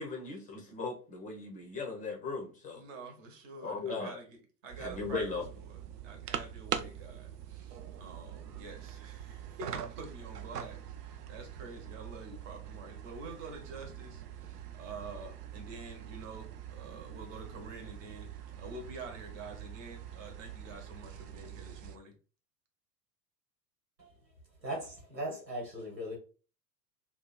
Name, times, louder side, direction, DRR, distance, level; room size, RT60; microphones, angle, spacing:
voice 1, 0.0-2.8 3.6-4.2 4.8-5.4, left 4 dB, 15° left, 0.6 m, -37 dB
voice 2, 2.7-22.1, right 3 dB, 45° right, 1.1 m, -48 dB
sound 1, 4.7-22.0, right 9 dB, 70° right, 0.5 m, -44 dB
voice 3, 24.6-26.2, right 1 dB, 85° right, 1.5 m, -38 dB
2.8 x 2.3 x 4.0 m
figure-of-eight pair, 85°, 49 cm